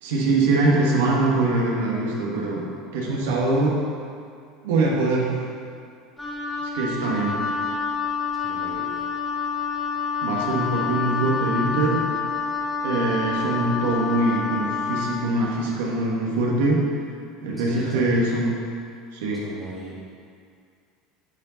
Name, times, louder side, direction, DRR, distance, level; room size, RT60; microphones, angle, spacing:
voice 1, 0.0-2.6 2.9-3.8 4.6-5.3 6.7-7.4 10.2-12.0 12.8-16.8 17.4-18.6 19.1-19.4, right 2 dB, 80° right, -3 dB, 1.3 m, -23 dB
voice 2, 3.1-3.4 8.4-8.9 17.5-18.1 19.4-20.0, right 2 dB, 20° right, -7 dB, 1.5 m, -39 dB
Wind instrument woodwind instrument, 6.2-15.3, left 5 dB, 10° left, 1.6 m, -28 dB
9.6 x 4.5 x 4.0 m, 2.3 s
hypercardioid pair, 85°, 0 cm